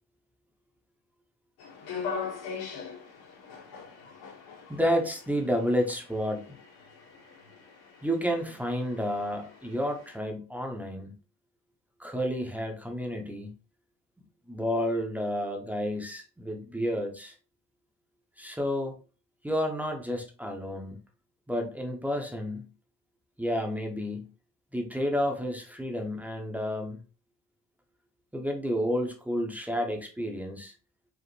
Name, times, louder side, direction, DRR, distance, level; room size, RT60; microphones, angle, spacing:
sound 1, 1.6-10.2, left 5 dB, 85° left, 1.6 m, -42 dB
voice 1, 4.7-6.5 8.0-11.1 12.0-13.5 14.5-17.3 18.4-19.0 19.4-21.0 21.5-22.7 23.4-24.3 24.7-27.0 28.3-30.7, equal, 5° right, 1 dB, 0.4 m, -30 dB
4.9 x 2.5 x 3.1 m, 0.35 s
cardioid pair, 180°, 36 cm